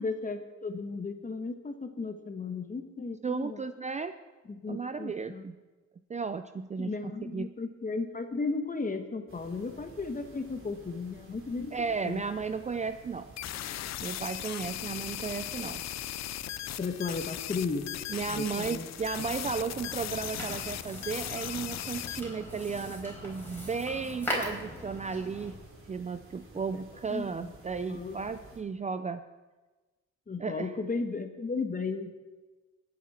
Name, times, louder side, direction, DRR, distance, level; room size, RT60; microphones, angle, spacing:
voice 1, 0.0-3.6 4.5-5.5 6.8-12.2 16.8-17.9 18.3-18.9 27.1-27.5 27.9-28.2 30.3-32.1, left 4 dB, 25° left, 7 dB, 1.3 m, -35 dB
voice 2, 3.2-4.1 4.7-5.5 6.1-7.5 11.7-13.3 14.0-15.8 18.1-25.6 25.9-29.2 30.4-30.7, right 5 dB, 25° right, 11 dB, 0.5 m, -34 dB
sound 1, 9.3-28.6, right 1 dB, 40° right, 3.9 m, -53 dB
sound 2, 13.4-22.2, left 13 dB, 60° left, 0.6 m, -38 dB
sound 3, 19.1-25.5, left 1 dB, 5° left, 4.6 m, -40 dB
20.5 x 8.4 x 4.3 m, 1.2 s
cardioid pair, 90°, 30 cm